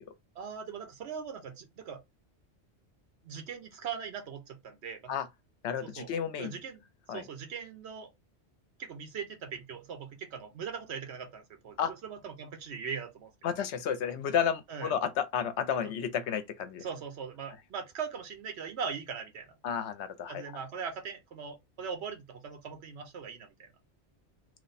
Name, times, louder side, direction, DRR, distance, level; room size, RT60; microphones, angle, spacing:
voice 1, 0.3-2.0 3.2-5.1 5.8-6.1 6.4-6.8 7.1-8.1 8.8-13.3 14.7-14.9 16.8-19.5 20.3-23.7, right 6 dB, 70° right, 1.1 m, -40 dB
voice 2, 5.6-6.6 7.1-7.2 11.8-11.9 13.4-16.8 19.6-20.4, left 8 dB, 80° left, 0.9 m, -31 dB
3.1 x 2.2 x 4.0 m
omnidirectional pair, 1.2 m